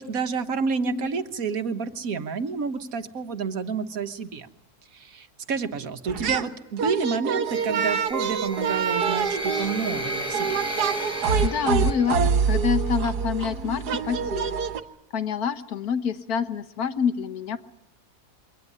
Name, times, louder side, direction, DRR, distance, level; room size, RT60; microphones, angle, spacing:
voice 1, 0.0-4.5 4.9-10.6, right 5 dB, 65° right, 9 dB, 1.6 m, -29 dB
voice 2, 0.8-1.2 11.4-12.2 12.5-14.6 15.1-17.6, left 7 dB, 70° left, 10 dB, 1.6 m, -27 dB
sound 1, 6.1-6.5 6.8-14.8, right 6 dB, 85° right, 1.7 m, -26 dB
sound 2, 7.5-12.5, equal, 5° right, 6.1 m, -34 dB
23.5 x 18.0 x 10.0 m, 0.90 s
omnidirectional pair, 1.7 m